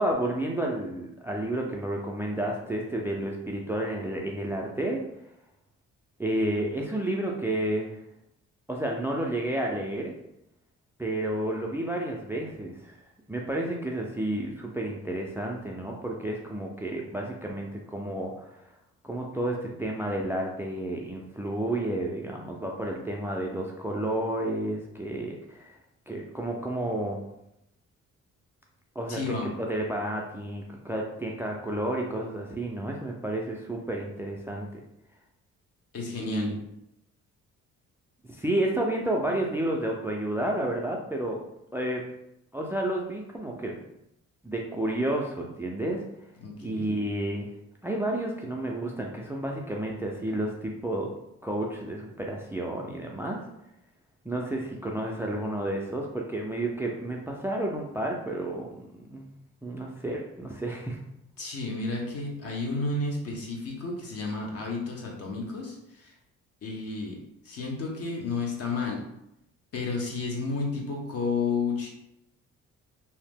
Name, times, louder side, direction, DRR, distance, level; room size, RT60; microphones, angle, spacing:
voice 1, 0.0-5.0 6.2-8.0 8.7-10.1 11.0-13.0 13.3-18.6 19.0-25.7 26.1-27.3 29.0-29.2 29.6-34.8 36.2-36.6 38.3-41.4 41.7-42.0 42.5-43.8 44.4-46.0 46.6-47.5 47.8-51.1 51.4-53.4 54.2-59.3 59.6-61.0, right 1 dB, 10° right, 0 dB, 0.3 m, -31 dB
voice 2, 29.1-29.5 35.9-36.5 46.4-46.9 61.4-66.1 66.6-69.1 69.7-71.9, left 3 dB, 55° left, -1 dB, 0.9 m, -32 dB
2.8 x 2.0 x 3.4 m, 0.82 s
cardioid pair, 90°, 30 cm